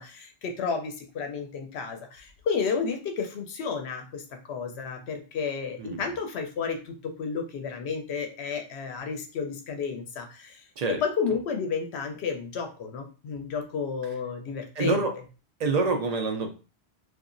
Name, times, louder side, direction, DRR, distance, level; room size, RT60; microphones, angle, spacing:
voice 1, 0.0-4.2 4.5-10.6 11.0-15.0, left 5 dB, 85° left, 4 dB, 0.9 m, -32 dB
voice 2, 5.8-6.1 10.8-11.0 14.8-15.2 15.6-16.5, right 3 dB, 55° right, 4 dB, 0.5 m, -26 dB
2.8 x 2.4 x 2.5 m, 0.33 s
omnidirectional pair, 1.1 m